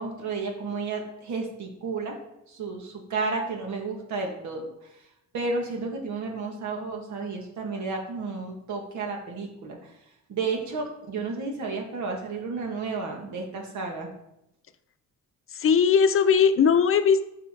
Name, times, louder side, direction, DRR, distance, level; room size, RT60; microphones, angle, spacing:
voice 1, 0.0-2.1 2.5-4.6 5.3-9.9 10.3-14.1, right 4 dB, 70° right, 2 dB, 1.9 m, -32 dB
voice 2, 15.5-17.2, left 6 dB, 45° left, 11 dB, 0.7 m, -19 dB
9.3 x 5.6 x 3.8 m, 0.87 s
cardioid pair, 90°, 30 cm